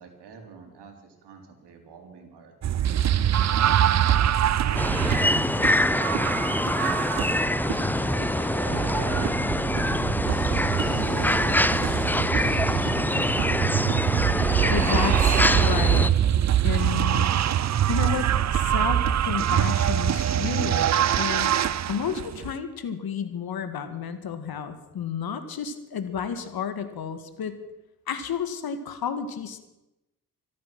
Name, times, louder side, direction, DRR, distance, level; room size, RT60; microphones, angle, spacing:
voice 1, 0.0-3.8 4.6-6.1 6.8-7.4 8.1-10.6 11.4-13.6, right 5 dB, 65° right, 4 dB, 3.7 m, -46 dB
sound 1, 2.6-22.5, right 10 dB, 40° right, 0.7 m, -24 dB
sound 2, 4.7-16.1, left 1 dB, 5° left, 0.6 m, -25 dB
voice 2, 14.7-16.1 16.6-17.3 17.9-21.5 21.9-27.6 28.1-29.6, left 7 dB, 55° left, 10 dB, 2.0 m, -31 dB
25.0 x 8.7 x 6.1 m, 0.94 s
hypercardioid pair, 50°, 45 cm